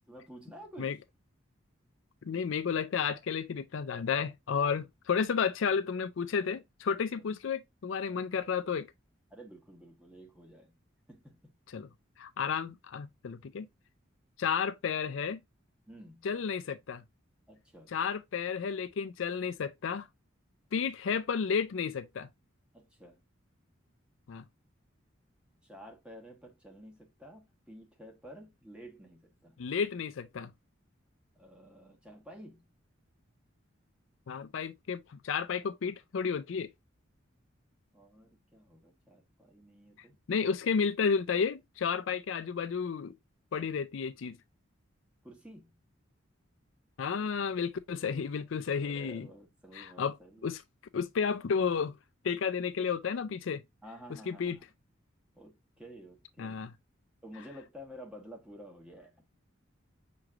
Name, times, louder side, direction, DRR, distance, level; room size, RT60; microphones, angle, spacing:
voice 1, 0.1-1.0 7.2-7.5 9.3-10.8 11.1-11.5 15.9-16.3 17.5-18.0 22.7-23.2 25.6-29.6 31.3-32.7 37.9-40.2 45.2-45.8 48.8-50.5 53.8-54.6 55.3-56.7 57.2-59.2, equal, 5° right, 1.2 m, -51 dB
voice 2, 2.2-8.9 11.7-11.9 12.2-13.7 14.4-15.4 16.2-17.0 17.9-20.1 20.7-22.3 24.3-24.4 29.6-30.5 34.3-36.7 40.3-43.1 43.5-44.4 47.0-49.3 49.7-50.1 50.4-50.6 50.9-52.0 52.2-53.6 54.3-54.6 56.4-56.7, left 6 dB, 75° left, 0.4 m, -32 dB
6.0 x 3.2 x 2.3 m
head